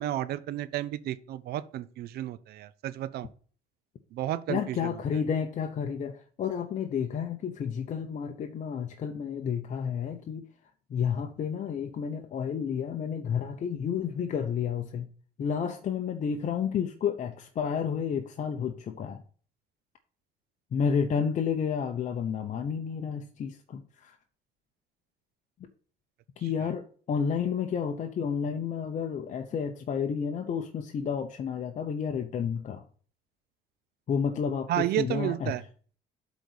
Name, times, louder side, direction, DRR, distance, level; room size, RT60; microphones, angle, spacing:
voice 1, 0.0-3.3 4.1-4.9 34.7-35.6, right 13 dB, 70° right, 0.5 m, -32 dB
voice 2, 4.5-10.4 10.9-15.1 15.4-19.2 20.7-24.2 26.4-32.8 34.1-35.6, left 7 dB, 45° left, 0.8 m, -31 dB
8.2 x 4.1 x 6.5 m
cardioid pair, 110°, 17 cm